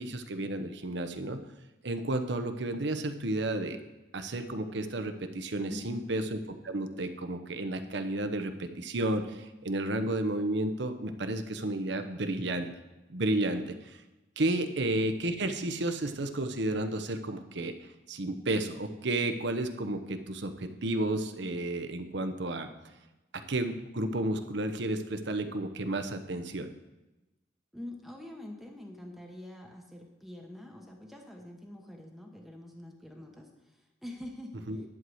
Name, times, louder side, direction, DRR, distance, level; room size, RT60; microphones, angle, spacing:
voice 1, 0.0-1.4 1.8-3.8 4.1-6.4 6.6-12.7 13.1-14.0 14.4-17.7 18.1-22.7 23.5-26.7 34.7-34.8, right 1 dB, 65° right, 8 dB, 0.9 m, -32 dB
voice 2, 5.7-6.1 14.6-14.8 27.7-34.8, left 1 dB, ahead, 1 dB, 1.0 m, -45 dB
11.0 x 4.7 x 7.8 m, 1.0 s
head